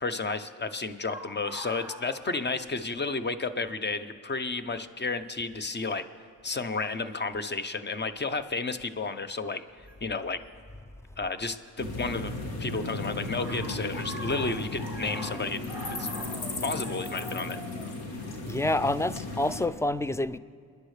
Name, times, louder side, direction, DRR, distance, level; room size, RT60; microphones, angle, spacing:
voice 1, 0.0-6.0 6.4-9.6 10.0-10.4 11.2-12.3 12.6-15.7 16.0-16.1 16.6-17.6, left 3 dB, 30° left, 0.8 m, -32 dB
sound 1, 1.1-3.2 3.4-3.5 4.5-4.8 5.8-6.0 6.8-7.2 9.9-10.0 11.3-12.2 12.5-19.0, equal, 5° right, 2.1 m, -44 dB
sound 2, 11.8-19.7, left 2 dB, 85° left, 1.5 m, -35 dB
voice 2, 18.5-20.4, left 1 dB, 10° left, 0.3 m, -27 dB
28.5 x 10.5 x 3.3 m
cardioid pair, 75°, 36 cm